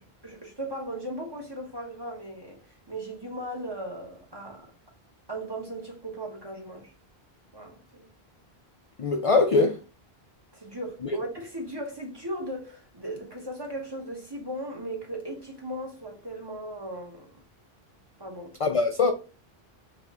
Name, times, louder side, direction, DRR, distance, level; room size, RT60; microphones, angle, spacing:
voice 1, 0.2-4.7 5.3-6.9 7.5-8.1 10.5-17.4 18.2-18.6, right 1 dB, 25° right, 1.1 m, -37 dB
voice 2, 9.0-9.8 11.1-11.2 18.6-19.1, left 3 dB, 50° left, 0.4 m, -22 dB
3.4 x 3.2 x 3.6 m
omnidirectional pair, 1.0 m